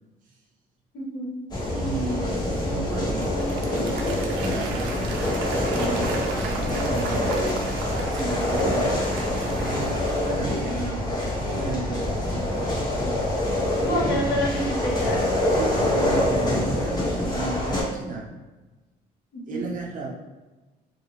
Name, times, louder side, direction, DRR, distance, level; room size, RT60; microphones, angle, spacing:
voice 1, 0.9-1.3 13.8-15.3 19.3-19.7, equal, 70° left, -5 dB, 1.1 m, -28 dB
sound 1, 1.5-17.8, left 1 dB, 25° left, 0.9 m, -25 dB
voice 2, 1.7-2.3 2.6-3.3 4.4-4.9 5.7-7.5 8.1-8.9 9.6-11.0 11.5-12.2 13.9-14.2 15.6-18.3 19.5-20.1, right 3 dB, 50° right, -1 dB, 0.8 m, -33 dB
Applause / Crowd, 2.9-10.7, right 4 dB, 85° right, 0.4 m, -37 dB
2.4 x 2.3 x 3.2 m, 1.2 s
cardioid pair, 110°, 17 cm